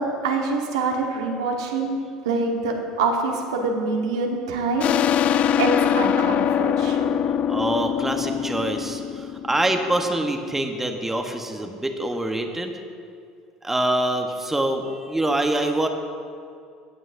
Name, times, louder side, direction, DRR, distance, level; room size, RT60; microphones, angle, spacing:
voice 1, 0.0-2.0 2.2-4.9 5.6-7.2, right 3 dB, 80° right, 1 dB, 1.3 m, -25 dB
sound 1, 4.8-10.1, left 9 dB, 45° left, 0.4 m, -23 dB
voice 2, 7.5-12.7 13.6-15.9, right 1 dB, 10° right, 4 dB, 1.1 m, -25 dB
16.5 x 9.2 x 2.7 m, 2.3 s
hypercardioid pair, 70°, 3 cm